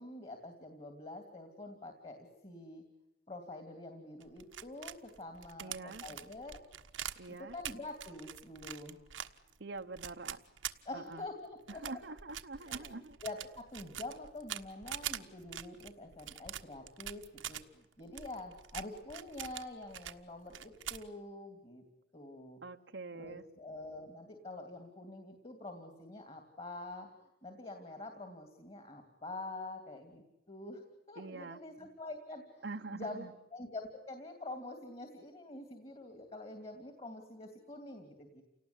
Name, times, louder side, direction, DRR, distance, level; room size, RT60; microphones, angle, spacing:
voice 1, 0.0-2.8 3.3-6.6 7.4-9.0 10.8-12.0 12.6-21.8 22.1-22.6 23.1-27.1 27.4-30.8 31.1-38.4, left 2 dB, 30° left, 6 dB, 2.8 m, -46 dB
sound 1, 4.2-11.3 11.7-17.6 18.1-20.2 20.5-21.1, right 10 dB, 80° right, 1.4 m, -44 dB
voice 2, 5.6-6.0 7.2-7.6 9.6-10.4 10.9-11.3 11.7-13.2 22.6-23.4 31.2-31.6 32.6-33.3, right 3 dB, 65° right, 5 dB, 1.0 m, -45 dB
29.5 x 19.0 x 10.0 m, 0.94 s
head